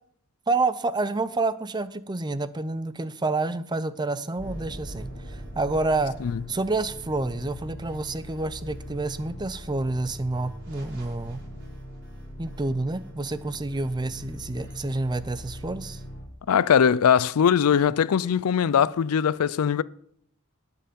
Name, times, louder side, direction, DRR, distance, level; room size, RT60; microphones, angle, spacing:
voice 1, 0.5-6.1 6.5-11.4 12.4-16.0, right 2 dB, 20° right, 0.6 m, -28 dB
sound 1, 4.4-16.2, equal, 55° right, 4.7 m, -40 dB
voice 2, 16.5-19.8, left 7 dB, 85° left, 0.4 m, -21 dB
18.0 x 6.8 x 5.2 m
head